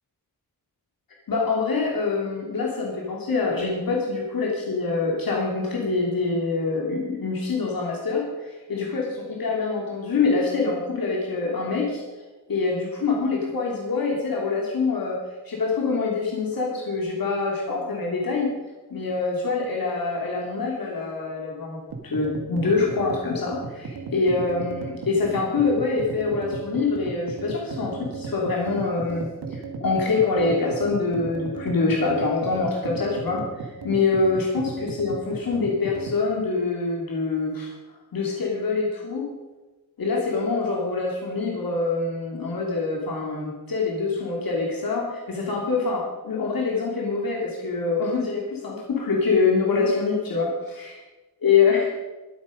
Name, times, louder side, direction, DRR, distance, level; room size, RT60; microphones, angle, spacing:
voice 1, 1.3-12.0 12.5-15.2 15.4-18.5 18.9-37.7 38.1-39.3 40.0-50.9 51.4-52.0, left 4 dB, 65° left, -2 dB, 2.8 m, -25 dB
sound 1, 21.9-36.2, right 4 dB, 80° right, 2.1 m, -35 dB
22.0 x 8.7 x 5.2 m, 1.2 s
wide cardioid pair, 180°, 38 cm